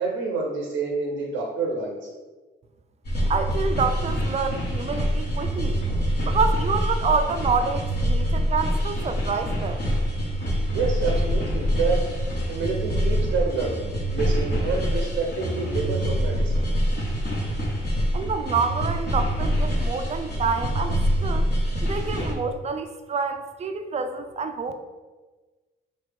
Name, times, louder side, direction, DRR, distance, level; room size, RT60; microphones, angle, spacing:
voice 1, 0.0-2.0 10.7-12.0 12.5-16.6, right 4 dB, 90° right, 0 dB, 0.7 m, -28 dB
sound 1, 3.0-22.3, equal, 55° left, 1.2 m, -25 dB
voice 2, 3.3-5.8 6.3-9.9 18.1-21.4 21.8-24.7, right 5 dB, 35° right, 8 dB, 0.4 m, -27 dB
4.0 x 3.1 x 3.3 m, 1.3 s
cardioid pair, 90°, 20 cm